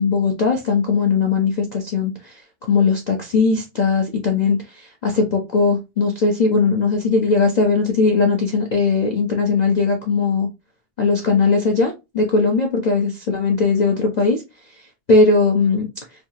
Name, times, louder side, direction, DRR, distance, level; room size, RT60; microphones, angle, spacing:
voice 1, 0.0-10.5 11.0-14.4 15.1-15.9, left 4 dB, 60° left, 1 dB, 0.4 m, -19 dB
3.4 x 2.3 x 2.7 m, 0.24 s
omnidirectional pair, 1.5 m